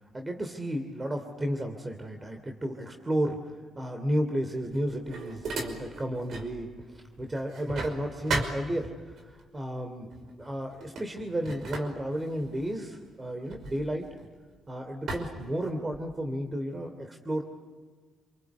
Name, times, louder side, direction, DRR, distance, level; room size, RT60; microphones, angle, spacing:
voice 1, 0.1-10.1 10.4-14.1 14.7-17.4, equal, 20° right, 5 dB, 2.9 m, -33 dB
sound 1, 4.5-6.6 6.9-9.2 10.1-10.3 10.7-14.5 15.1-16.2, right 3 dB, 65° right, 5.4 m, -37 dB
28.0 x 24.0 x 8.4 m, 1.4 s
cardioid pair, 90°, 0 cm